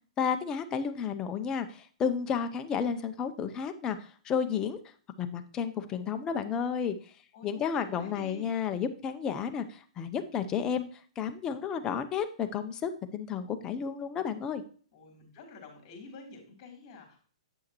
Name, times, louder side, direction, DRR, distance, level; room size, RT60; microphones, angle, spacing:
voice 1, 0.2-4.8 5.2-7.0 7.4-10.9 11.2-14.6, left 7 dB, 20° left, 8 dB, 0.7 m, -32 dB
voice 2, 7.3-8.5 14.9-17.2, left 3 dB, 35° left, 1 dB, 3.4 m, -49 dB
8.6 x 6.3 x 3.0 m, 0.43 s
hypercardioid pair, 150°, 4 cm